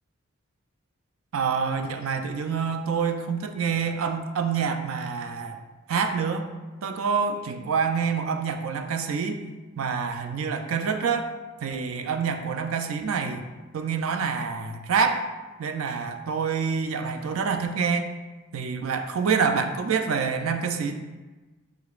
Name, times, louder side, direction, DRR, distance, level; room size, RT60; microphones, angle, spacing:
voice 1, 1.3-5.6 5.9-6.5 6.8-9.4 9.8-11.3 11.6-13.4 13.7-15.3 15.6-18.1 18.5-20.9, right 6 dB, 75° right, 7 dB, 0.4 m, -27 dB
4.9 x 3.8 x 2.4 m, 1.2 s
head